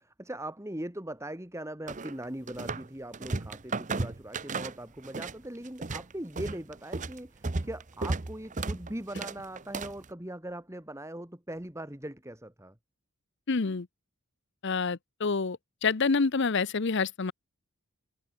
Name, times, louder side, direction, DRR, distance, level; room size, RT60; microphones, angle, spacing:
voice 1, 0.0-12.8, right 1 dB, 15° right, 2.0 m, -40 dB
sound 1, 1.9-2.9 3.1-5.4 5.7-10.1, right 3 dB, 35° right, 0.8 m, -34 dB
voice 2, 13.5-13.9 14.6-17.3, left 4 dB, 55° left, 0.7 m, -27 dB
head